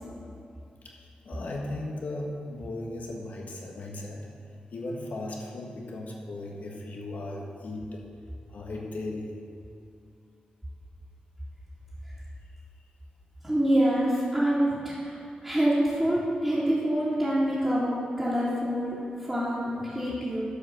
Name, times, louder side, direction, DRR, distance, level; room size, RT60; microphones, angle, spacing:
voice 1, 0.8-4.3 4.7-8.0 8.5-9.4, left 2 dB, 70° left, -1 dB, 1.6 m, -37 dB
voice 2, 13.4-17.9 18.2-19.0 19.3-20.4, right 1 dB, 10° right, -12 dB, 2.4 m, -26 dB
12.0 x 5.2 x 6.6 m, 2.5 s
wide cardioid pair, 150°, 3 cm